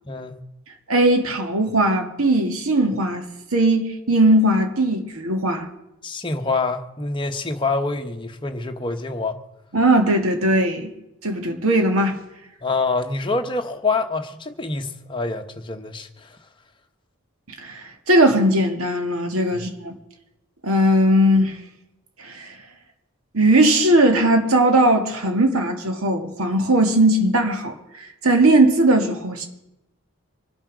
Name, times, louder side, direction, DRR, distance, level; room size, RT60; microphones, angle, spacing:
voice 1, 0.0-0.4 6.0-9.4 12.6-16.4 19.5-19.7, left 3 dB, 20° left, 1.0 m, -26 dB
voice 2, 0.9-3.2 3.5-5.7 9.7-10.9 11.2-12.2 17.6-17.8 18.1-19.9 20.6-21.6 22.2-22.5 23.3-29.5, right 1 dB, 85° right, 1.9 m, -18 dB
24.5 x 8.7 x 6.2 m
head